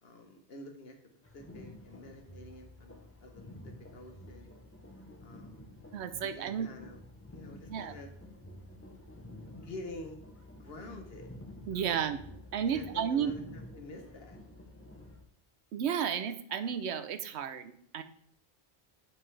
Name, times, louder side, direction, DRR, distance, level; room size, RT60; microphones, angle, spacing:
voice 1, 0.0-1.0 1.3-4.5 5.2-5.7 6.2-7.0 7.3-8.1 9.5-10.2 10.6-11.3 11.7-11.9 12.7-14.4, left 2 dB, 65° left, 4 dB, 1.2 m, -48 dB
sound 1, 1.2-15.2, left 1 dB, 15° left, 0.7 m, -50 dB
voice 2, 5.9-6.7 7.7-7.9 11.7-12.2 12.5-13.3 15.7-18.0, right 8 dB, 80° right, 10 dB, 0.9 m, -32 dB
7.8 x 5.4 x 3.3 m, 0.66 s
omnidirectional pair, 1.1 m